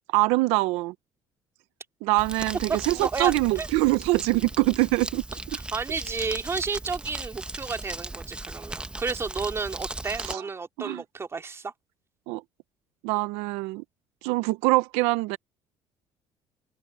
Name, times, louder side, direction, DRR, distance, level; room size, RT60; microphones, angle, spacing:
voice 1, 0.1-0.9 2.0-5.2 10.2-10.4 10.8-11.0 12.3-12.4 13.0-13.8 14.2-15.4, right 22 dB, 85° right, 0.6 m, -24 dB
Crumpling crinkling, 2.2-10.3, right 2 dB, 10° right, 1.1 m, -37 dB
voice 2, 2.7-3.7 5.5-11.7, right 4 dB, 25° right, 2.5 m, -32 dB
open air
cardioid pair, 100°, 10 cm